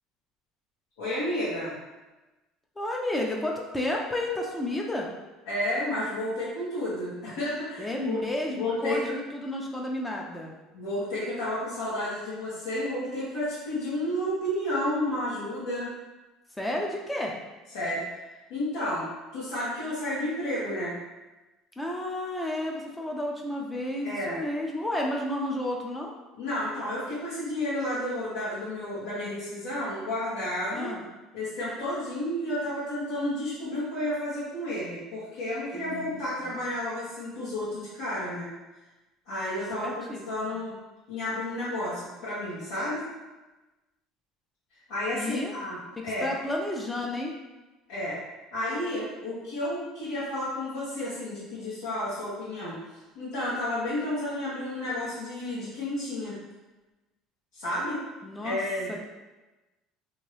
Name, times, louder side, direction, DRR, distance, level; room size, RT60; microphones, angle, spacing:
voice 1, 1.0-1.8 5.5-8.2 8.5-9.1 10.7-15.9 17.7-18.0 18.5-19.1 19.3-20.9 24.0-24.4 26.4-30.9 31.3-38.5 39.3-39.9 40.3-40.7 41.1-43.1 44.9-45.8 46.0-46.3 47.9-48.2 48.5-52.8 53.1-56.4 57.5-58.0 58.4-58.9, left 1 dB, 85° left, -12 dB, 1.3 m, -31 dB
voice 2, 2.8-5.1 7.8-10.5 16.6-17.3 21.8-26.2 30.7-31.0 35.7-36.1 36.4-36.5 39.8-40.5 45.1-45.5 46.2-47.4 58.2-58.6 58.9-59.0, left 1 dB, 10° left, -1 dB, 0.4 m, -31 dB
2.8 x 2.6 x 3.2 m, 1.1 s
cardioid pair, 140°, 0 cm